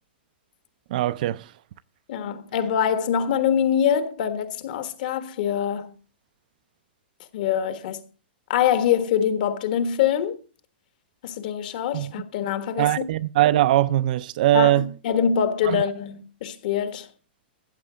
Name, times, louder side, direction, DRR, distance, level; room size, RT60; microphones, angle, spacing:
voice 1, 0.9-1.5 11.9-12.1 12.8-14.9 15.6-15.8, right 14 dB, 50° right, 0.5 m, -21 dB
voice 2, 2.1-5.9 7.3-8.0 8.5-10.4 11.2-13.0 14.5-17.1, left 8 dB, 50° left, 1.4 m, -24 dB
14.0 x 7.4 x 5.0 m
hypercardioid pair, 160°, 6 cm